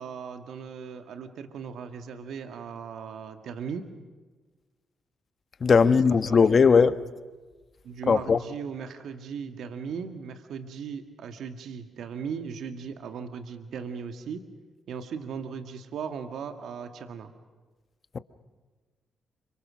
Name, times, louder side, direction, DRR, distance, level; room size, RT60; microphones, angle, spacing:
voice 1, 0.0-3.8 5.8-6.9 7.8-14.4 14.9-17.3, right 6 dB, 75° right, 1.9 m, -38 dB
voice 2, 5.6-7.0 8.1-8.4, left 5 dB, 50° left, 1.3 m, -19 dB
30.0 x 25.0 x 6.4 m
supercardioid pair, 55°, 0 cm